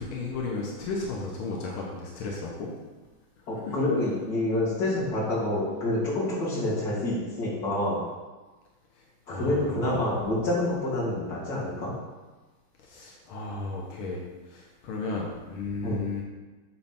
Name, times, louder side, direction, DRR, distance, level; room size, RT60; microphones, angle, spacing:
voice 1, 0.0-2.7 3.7-3.8 9.3-10.1 12.8-16.2, left 3 dB, 85° left, -2 dB, 1.8 m, -34 dB
voice 2, 3.5-8.0 9.3-11.9 15.8-16.0, left 1 dB, 50° left, -7 dB, 2.7 m, -27 dB
8.5 x 3.2 x 5.7 m, 1.2 s
omnidirectional pair, 2.3 m